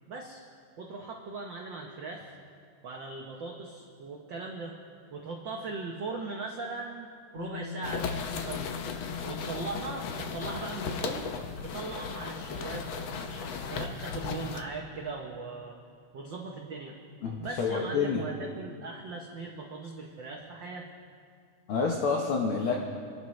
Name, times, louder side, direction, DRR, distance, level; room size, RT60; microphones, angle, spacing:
voice 1, 0.1-0.4 0.8-2.4 2.8-4.8 5.1-7.1 7.3-8.7 9.3-11.3 11.6-15.8 16.1-17.0 17.4-20.9, right 3 dB, 70° right, 0 dB, 1.1 m, -39 dB
Bass guitar, 7.3-13.6, left 8 dB, 20° left, 3.1 m, -44 dB
sound 1, 7.8-14.6, left 5 dB, 90° left, 1.1 m, -36 dB
voice 2, 17.2-18.2 21.7-22.7, left 5 dB, 60° left, 0 dB, 1.5 m, -28 dB
25.0 x 11.5 x 3.2 m, 2.2 s
omnidirectional pair, 3.4 m